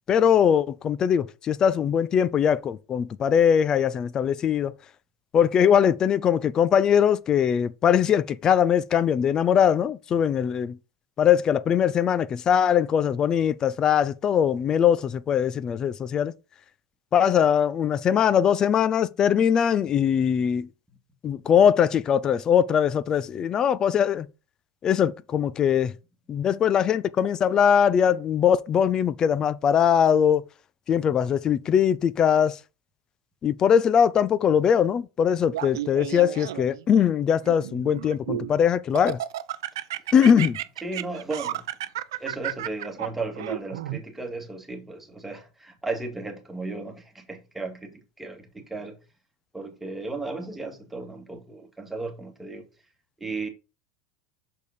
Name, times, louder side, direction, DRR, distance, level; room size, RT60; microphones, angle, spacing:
voice 1, 0.1-4.7 5.3-10.8 11.2-16.3 17.1-20.7 21.2-24.3 24.8-25.9 26.3-30.4 30.9-32.6 33.4-39.2 40.1-40.6, left 8 dB, 35° left, 0.5 m, -21 dB
Laughter, 35.5-36.8 37.4-38.5 39.0-44.0, right 13 dB, 90° right, 0.6 m, -32 dB
voice 2, 40.8-41.7 42.2-49.0 49.5-52.7 53.2-53.5, right 3 dB, 5° right, 2.0 m, -35 dB
6.6 x 5.3 x 4.2 m
supercardioid pair, 115°, 2 cm